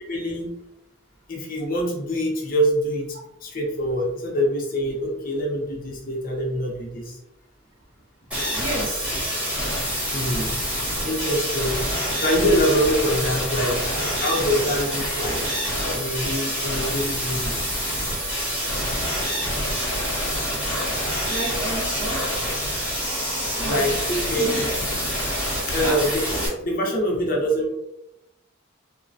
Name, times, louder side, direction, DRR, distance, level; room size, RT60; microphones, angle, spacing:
voice 1, 0.1-0.5 1.3-3.2 3.4-7.2 10.1-10.6 11.0-11.8 12.2-15.4 15.9-17.7 23.7-24.5 25.7-27.7, equal, 45° left, -1 dB, 0.6 m, -25 dB
sound 1, 8.3-26.5, equal, 5° right, 1.1 m, -26 dB
voice 2, 8.5-9.1 21.3-22.2 23.6-23.9 24.4-24.6 25.8-26.0, right 1 dB, 80° right, -4 dB, 1.2 m, -31 dB
3.0 x 2.2 x 2.6 m, 0.87 s
head